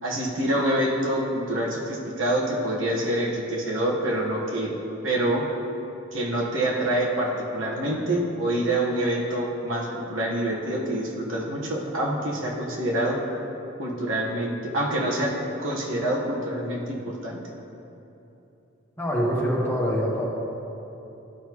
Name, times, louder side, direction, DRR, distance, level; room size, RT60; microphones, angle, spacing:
voice 1, 0.0-4.7 5.0-5.4 6.1-13.2 13.8-15.3 15.6-17.4, right 1 dB, 70° right, -3 dB, 1.4 m, -26 dB
voice 2, 19.0-20.3, equal, 10° left, -4 dB, 1.2 m, -24 dB
12.5 x 5.5 x 3.1 m, 2.9 s
head